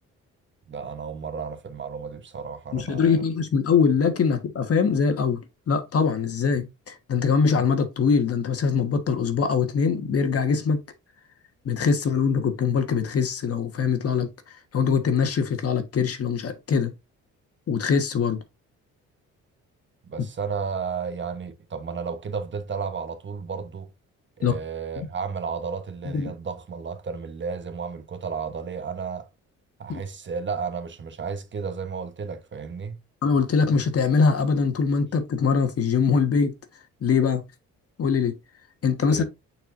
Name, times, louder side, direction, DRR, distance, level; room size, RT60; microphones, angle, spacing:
voice 1, 0.7-3.2 20.0-23.9 24.4-29.3 29.8-33.0 39.0-39.3, right 5 dB, 40° right, 1.1 m, -33 dB
voice 2, 2.7-5.4 5.7-10.8 11.6-14.3 14.7-16.9 17.7-18.4 24.4-24.6 26.0-26.3 29.9-30.0 33.2-36.5 37.0-37.4 38.0-38.3 38.8-39.3, left 5 dB, 50° left, 1.4 m, -22 dB
8.7 x 4.5 x 2.6 m
cardioid pair, 90°, 30 cm